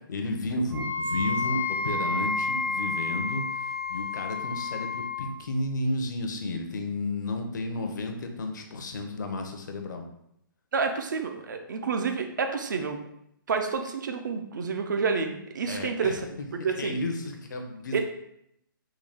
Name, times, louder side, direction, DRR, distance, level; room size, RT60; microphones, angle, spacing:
voice 1, 0.1-10.0 15.7-16.2 16.7-18.0, left 2 dB, 55° left, 4 dB, 0.6 m, -32 dB
Wind instrument woodwind instrument, 0.7-5.2, left 3 dB, 85° right, 1.1 m, -30 dB
voice 2, 10.7-13.0 13.5-16.3 16.5-16.9 17.9-18.0, right 5 dB, 55° right, 6 dB, 0.5 m, -29 dB
3.7 x 2.2 x 3.3 m, 0.76 s
hypercardioid pair, 170°, 12 cm